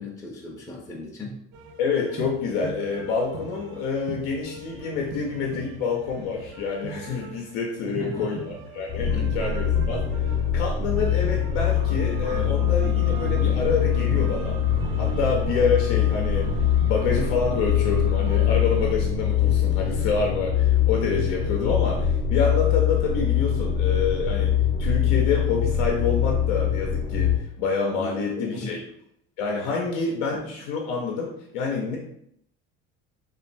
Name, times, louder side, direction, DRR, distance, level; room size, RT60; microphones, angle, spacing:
voice 1, 0.0-1.4 7.9-8.4 9.1-9.3 28.0-28.8, left 2 dB, 10° left, -3 dB, 0.5 m, -36 dB
sound 1, 1.5-19.3, right 5 dB, 55° right, 0.5 m, -41 dB
voice 2, 1.8-10.0 10.5-14.6 15.0-16.5 16.8-28.8 29.4-32.0, left 5 dB, 90° left, 0 dB, 0.6 m, -27 dB
sound 2, 8.9-27.4, left 9 dB, 45° left, 0.8 m, -23 dB
sound 3, 11.7-18.9, right 5 dB, 90° right, 1.0 m, -39 dB
2.9 x 2.3 x 2.5 m, 0.72 s
supercardioid pair, 105°, 30 cm